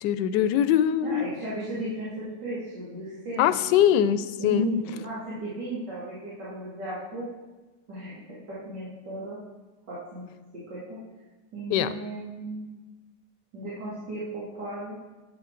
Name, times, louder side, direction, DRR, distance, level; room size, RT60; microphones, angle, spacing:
voice 1, 0.0-1.3 3.4-4.7 11.7-11.9, left 10 dB, 90° left, 13 dB, 1.2 m, -22 dB
voice 2, 1.0-3.8 4.4-7.3 7.9-9.4 9.9-10.3 10.7-11.0 11.5-12.7 13.5-14.9, right 1 dB, 90° right, -10 dB, 3.0 m, -35 dB
11.0 x 8.7 x 3.8 m, 1.2 s
omnidirectional pair, 1.8 m